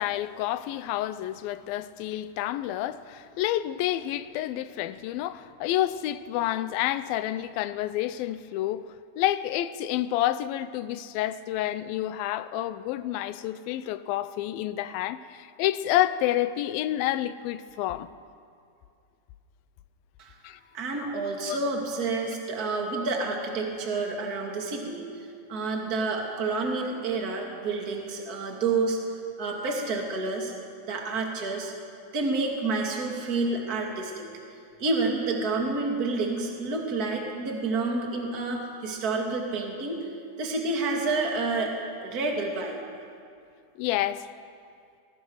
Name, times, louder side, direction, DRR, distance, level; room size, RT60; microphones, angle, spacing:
voice 1, 0.0-8.8 9.2-18.1 20.4-20.6 21.0-21.6 43.8-44.3, left 13 dB, 80° left, 2.5 m, -29 dB
voice 2, 20.7-25.0 25.5-29.0 29.4-30.5 30.9-31.7 32.1-34.3 34.8-40.1 40.4-41.7 42.0-42.8, right 3 dB, 25° right, 2.6 m, -29 dB
24.0 x 21.0 x 6.5 m
omnidirectional pair, 4.3 m